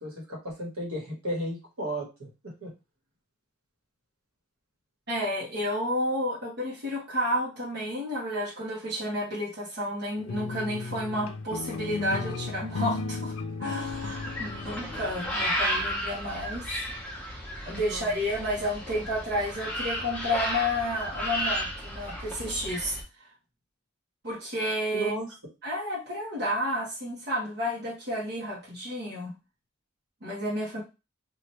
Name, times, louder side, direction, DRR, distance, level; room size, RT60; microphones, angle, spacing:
voice 1, 0.0-2.7 17.9-18.2 24.9-25.3, right 1 dB, 75° right, -1 dB, 1.3 m, -34 dB
voice 2, 5.1-16.6 17.6-23.3 24.2-25.1 25.6-29.3 30.2-30.8, equal, 50° right, -5 dB, 1.0 m, -31 dB
sound 1, 10.2-15.6, left 3 dB, 75° left, 0.5 m, -35 dB
sound 2, 13.8-23.0, equal, 5° left, 0.6 m, -33 dB
2.8 x 2.4 x 3.1 m, 0.28 s
head